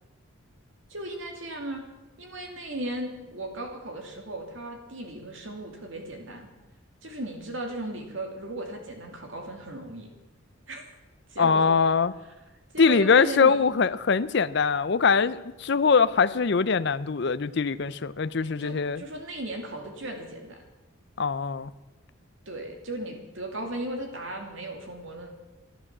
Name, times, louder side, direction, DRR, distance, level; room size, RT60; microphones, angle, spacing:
voice 1, 0.9-1.8 2.2-6.5 7.0-10.1 10.7-10.8 11.3-11.6 12.7-13.6 18.6-20.6 22.5-25.3, right 1 dB, 65° right, 3 dB, 2.5 m, -36 dB
voice 2, 11.4-12.1 12.8-19.0 21.2-21.7, left 5 dB, 55° left, 16 dB, 0.5 m, -22 dB
12.5 x 11.5 x 7.3 m, 1.1 s
head